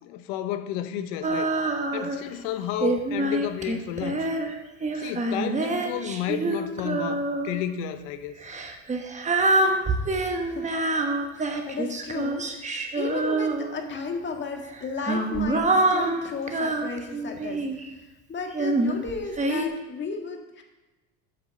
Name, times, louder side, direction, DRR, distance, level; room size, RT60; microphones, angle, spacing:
voice 1, 0.0-1.5 1.9-4.3 4.9-8.4, left 10 dB, 80° left, 10 dB, 1.0 m, -31 dB
Female singing, 1.2-2.3 2.8-7.6 8.4-14.0 14.7-17.9 18.5-19.7, right 2 dB, 20° right, 1.1 m, -26 dB
voice 2, 11.3-20.6, left 4 dB, 30° left, 3 dB, 1.8 m, -34 dB
8.0 x 5.9 x 6.4 m, 1.1 s
supercardioid pair, 110°, 35 cm